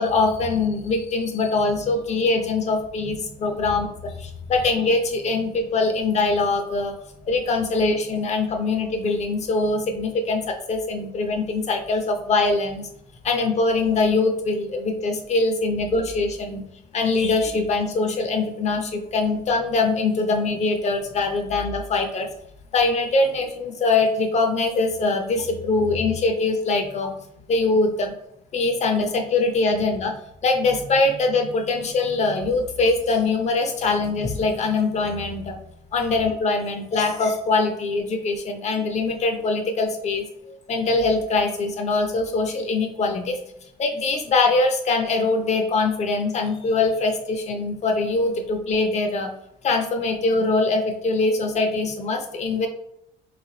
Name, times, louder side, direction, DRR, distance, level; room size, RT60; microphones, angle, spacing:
voice 1, 0.0-7.0 7.3-12.9 13.2-16.6 16.9-22.3 22.7-27.1 27.5-28.2 28.5-30.1 30.4-35.6 35.9-43.4 43.8-49.3 49.6-52.7, left 3 dB, 40° left, 4 dB, 0.6 m, -23 dB
3.2 x 2.4 x 3.8 m, 0.78 s
cardioid pair, 110°, 17 cm